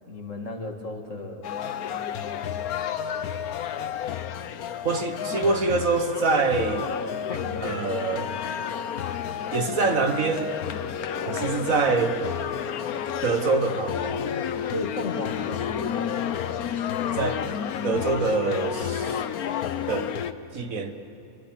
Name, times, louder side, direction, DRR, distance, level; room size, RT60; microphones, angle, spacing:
voice 1, 0.1-1.5 7.3-7.8 14.7-16.1, left 2 dB, 60° left, 3 dB, 2.6 m, -34 dB
sound 1, 1.4-20.3, left 8 dB, 85° left, 1.4 m, -30 dB
voice 2, 4.8-6.9 7.6-8.3 9.5-10.5 11.3-12.2 13.2-14.2 17.2-17.5 17.8-19.2 19.9-20.1 20.5-21.0, right 4 dB, 70° right, 7 dB, 1.8 m, -25 dB
29.0 x 24.0 x 7.5 m, 2.9 s
omnidirectional pair, 1.5 m